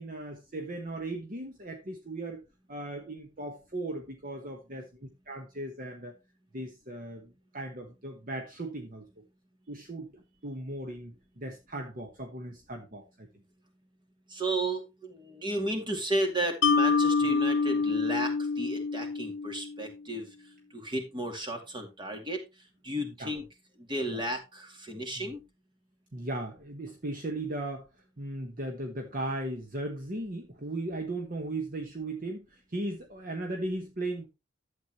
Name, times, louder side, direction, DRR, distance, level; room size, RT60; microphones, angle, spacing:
voice 1, 0.0-2.4 2.7-6.2 6.5-9.1 9.7-13.3 23.2-23.3 24.1-24.2 25.2-25.3 26.1-27.9 28.2-34.3, right 2 dB, 45° right, 1.2 m, -37 dB
voice 2, 14.3-20.3 20.7-22.4 22.8-23.4 23.8-25.4, right 1 dB, 25° right, 2.3 m, -33 dB
Mallet percussion, 16.6-19.9, left 4 dB, 65° left, 0.6 m, -26 dB
11.5 x 8.1 x 3.0 m
head